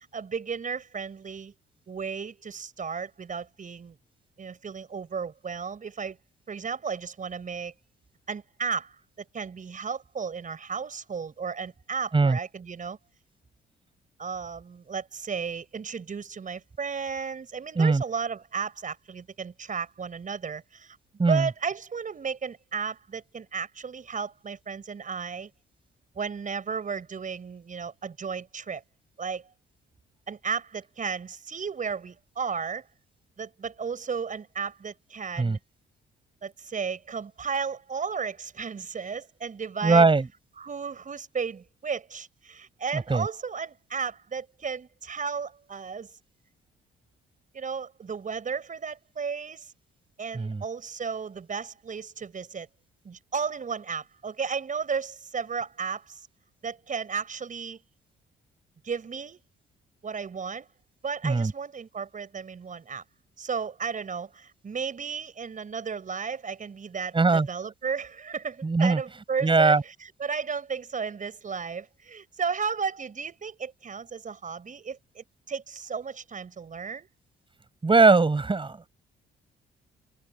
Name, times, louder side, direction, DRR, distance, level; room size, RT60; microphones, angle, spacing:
voice 1, 0.1-1.5 1.9-4.0 4.4-6.2 6.5-7.7 8.3-13.0 14.2-21.0 21.3-25.5 26.2-28.8 29.2-29.5 30.3-32.8 33.4-35.6 36.4-40.1 40.6-46.1 47.5-49.7 50.2-52.7 53.0-56.3 56.6-57.8 58.8-59.4 60.0-60.7 61.0-63.0 63.4-77.1, right 6 dB, 40° right, 5.1 m, -34 dB
voice 2, 39.8-40.3 42.9-43.3 50.3-50.6 61.2-61.5 67.1-67.5 68.6-69.0 69.4-69.8 77.8-78.8, right 3 dB, 25° right, 7.3 m, -20 dB
cardioid pair, 90°, 20 cm